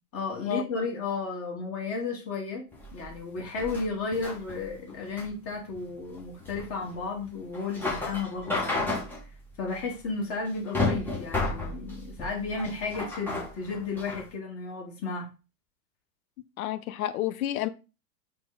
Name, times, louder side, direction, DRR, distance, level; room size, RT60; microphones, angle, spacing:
voice 1, 0.1-2.7 2.9-8.9 9.6-15.3, left 4 dB, 30° left, 1.3 m, -33 dB
sound 1, 2.7-14.3, left 2 dB, 5° left, 0.5 m, -33 dB
voice 2, 16.6-17.7, left 13 dB, 60° left, 0.5 m, -30 dB
3.2 x 2.1 x 3.8 m
hypercardioid pair, 110°, 49 cm